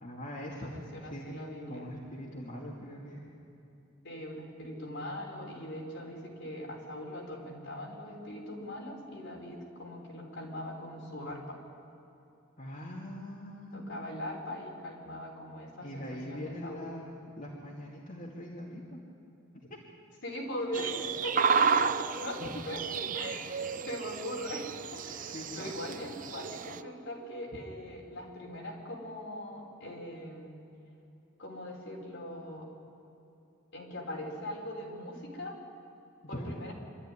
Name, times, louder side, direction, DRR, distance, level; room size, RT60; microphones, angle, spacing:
voice 1, 0.0-0.7 1.0-1.3 1.7-3.2 12.6-13.9 15.8-19.0 19.7-19.8 22.4-22.5 23.4-23.7 25.3-26.0 36.2-36.5, equal, 40° left, -4 dB, 2.3 m, -42 dB
voice 2, 0.6-1.8 4.0-11.6 13.7-16.8 20.2-30.5 31.4-32.7 33.7-35.6 36.3-36.7, left 1 dB, 60° left, -2 dB, 4.4 m, -40 dB
sound 1, 20.7-26.8, right 6 dB, 40° right, 0.5 m, -32 dB
25.5 x 13.0 x 9.9 m, 2.9 s
head